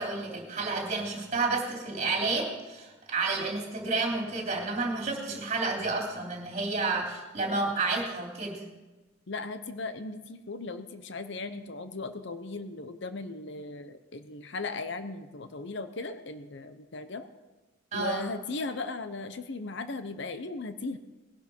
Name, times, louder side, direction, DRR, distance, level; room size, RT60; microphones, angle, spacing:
voice 1, 0.0-8.6 17.9-18.2, right 3 dB, 35° right, 0 dB, 3.1 m, -30 dB
voice 2, 9.3-17.3 17.9-21.0, left 3 dB, 65° left, 10 dB, 0.8 m, -37 dB
19.5 x 11.5 x 4.5 m, 1.1 s
head